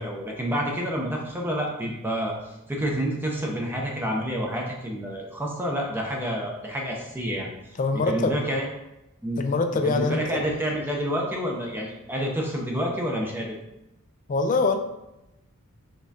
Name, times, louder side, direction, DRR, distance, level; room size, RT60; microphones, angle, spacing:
voice 1, 0.0-2.3 2.7-8.7 9.2-9.4 9.8-13.6, equal, 10° right, -1 dB, 0.6 m, -28 dB
voice 2, 7.8-8.4 9.4-10.2 14.3-14.8, left 3 dB, 35° left, 7 dB, 0.4 m, -23 dB
5.3 x 3.6 x 2.7 m, 0.90 s
head